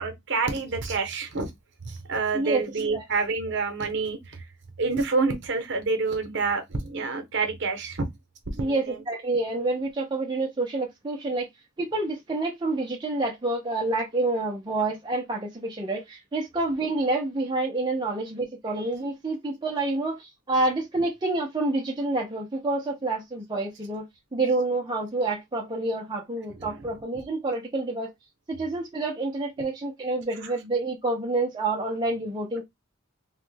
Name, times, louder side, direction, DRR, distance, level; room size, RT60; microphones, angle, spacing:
voice 1, 0.0-1.5 1.8-4.4 4.8-8.1 8.5-9.0 26.5-27.0 30.4-30.5, right 4 dB, 55° right, 0.8 m, -28 dB
voice 2, 8.6-11.5 11.8-28.1 28.5-32.6, right 2 dB, 20° right, 0.5 m, -28 dB
3.0 x 2.1 x 3.2 m
head